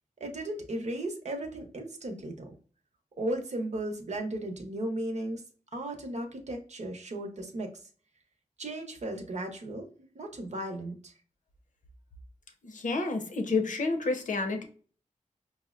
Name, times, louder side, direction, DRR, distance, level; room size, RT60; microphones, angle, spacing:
voice 1, 0.2-2.5 3.2-5.4 5.7-7.8 8.6-11.1, right 1 dB, 60° right, 4 dB, 0.8 m, -36 dB
voice 2, 12.6-14.6, left 3 dB, 75° left, 6 dB, 0.7 m, -29 dB
5.5 x 2.1 x 2.4 m, 0.42 s
wide cardioid pair, 120°, 13 cm